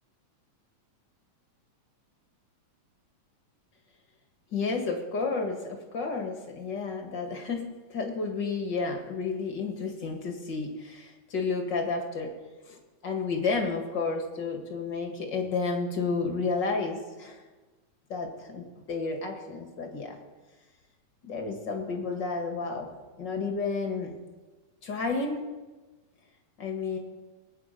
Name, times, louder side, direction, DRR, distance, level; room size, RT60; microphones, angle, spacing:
voice 1, 4.5-12.3 12.7-12.8 13.0-17.4 18.1-20.2 21.3-22.9 23.2-24.2 24.8-25.4 26.6-27.0, left 4 dB, 45° left, 3 dB, 2.0 m, -31 dB
20.5 x 9.1 x 5.1 m, 1.2 s
omnidirectional pair, 3.3 m